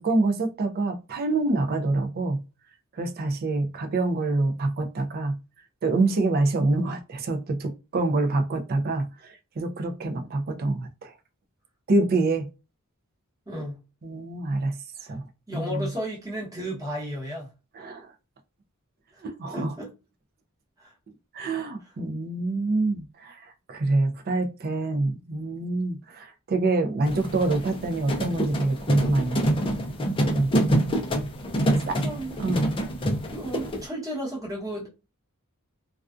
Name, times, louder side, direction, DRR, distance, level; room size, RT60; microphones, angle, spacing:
voice 1, 0.0-2.4 2.9-5.4 5.8-11.1 11.9-12.5 14.0-14.8 15.0-15.2 15.5-15.9 17.7-18.1 19.2-19.7 21.3-23.4 23.7-29.4 30.2-30.6 31.9-32.0 32.4-32.7, right 2 dB, 45° right, 0.4 m, -26 dB
voice 2, 10.0-10.4 13.5-13.8 15.0-15.1 15.5-17.5 19.5-19.9 20.8-20.9 31.5-32.3 33.3-34.9, equal, 15° right, 1.0 m, -34 dB
sound 1, 27.1-33.9, right 1 dB, 25° left, 0.4 m, -26 dB
2.3 x 2.3 x 2.4 m
head